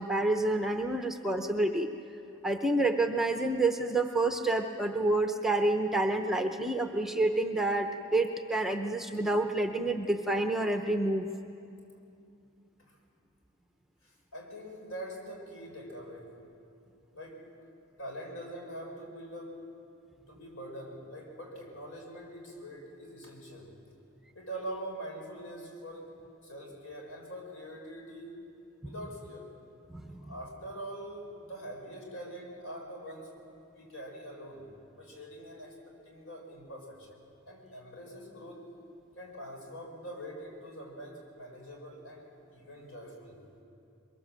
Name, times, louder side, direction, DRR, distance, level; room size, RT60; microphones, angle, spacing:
voice 1, 0.0-1.9 2.4-11.3 29.9-30.3, right 2 dB, ahead, 5 dB, 0.7 m, -28 dB
voice 2, 14.0-16.3 17.1-17.5 18.0-19.7 20.3-23.8 24.3-28.4 28.8-29.5 30.2-33.4 33.7-37.2 37.5-38.7 39.2-43.4, right 1 dB, 70° left, 0 dB, 5.3 m, -44 dB
23.0 x 22.0 x 7.5 m, 2.6 s
head